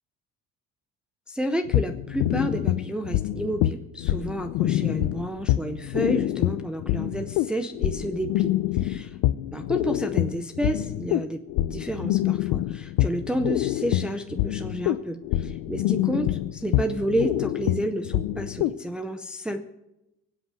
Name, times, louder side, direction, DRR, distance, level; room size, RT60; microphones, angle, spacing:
voice 1, 1.3-9.2 9.5-11.4 11.7-19.6, right 1 dB, 5° right, 5 dB, 0.6 m, -30 dB
sound 1, 1.7-18.8, left 15 dB, 85° left, 0.7 m, -26 dB
23.0 x 8.3 x 6.3 m, 0.88 s
cardioid pair, 180°, 33 cm